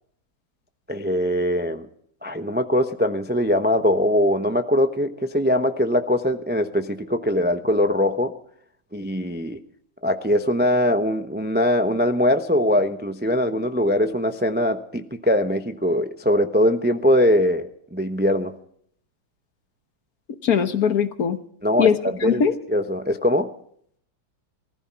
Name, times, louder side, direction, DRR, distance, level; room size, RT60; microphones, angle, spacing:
voice 1, 0.9-1.9 2.2-8.4 8.9-9.6 10.0-18.5 21.6-21.9 22.2-22.4 22.7-23.5, left 1 dB, 15° right, 7 dB, 0.3 m, -21 dB
voice 2, 20.4-21.4 21.8-22.5, left 7 dB, 55° left, 9 dB, 1.5 m, -21 dB
20.0 x 14.5 x 4.7 m, 0.65 s
omnidirectional pair, 2.1 m